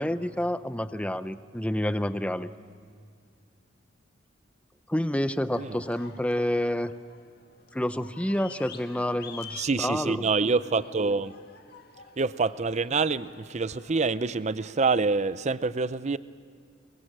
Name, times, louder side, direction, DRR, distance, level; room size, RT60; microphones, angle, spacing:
voice 1, 0.0-2.5 4.9-6.9 7.7-10.2, left 1 dB, 5° left, 0.6 m, -28 dB
sound 1, 5.5-15.1, left 6 dB, 50° left, 1.8 m, -49 dB
voice 2, 9.6-11.3 12.2-16.2, right 4 dB, 35° right, 0.6 m, -26 dB
24.5 x 23.0 x 7.4 m
head